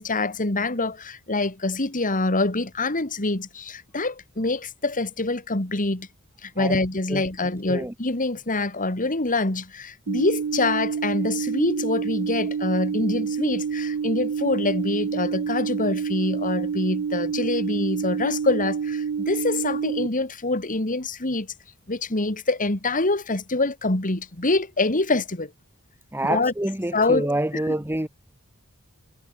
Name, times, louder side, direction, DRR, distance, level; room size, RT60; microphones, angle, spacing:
voice 1, 0.0-6.1 6.4-21.5 21.9-25.5 26.3-26.5 26.9-27.3 27.5-27.8, left 2 dB, 40° left, 2.5 m, -25 dB
sound 1, 10.1-20.1, right 6 dB, 90° right, 0.5 m, -28 dB
voice 2, 26.1-28.1, right 1 dB, 10° right, 1.3 m, -27 dB
head